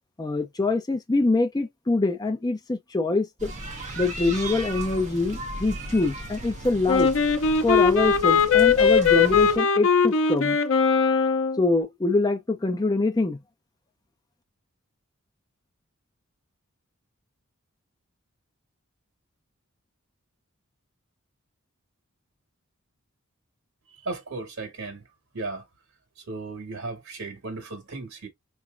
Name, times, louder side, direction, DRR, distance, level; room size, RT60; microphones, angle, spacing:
voice 1, 0.2-3.5 4.0-7.1 7.6-10.6 11.6-13.4, left 3 dB, 20° left, 0.5 m, -24 dB
sound 1, 3.4-9.6, right 1 dB, 35° right, 0.9 m, -36 dB
Wind instrument woodwind instrument, 6.9-11.6, left 6 dB, 65° left, 0.6 m, -20 dB
voice 2, 24.0-25.0 25.3-25.6 26.3-28.3, right 3 dB, 80° right, 1.7 m, -35 dB
3.4 x 3.2 x 2.4 m
head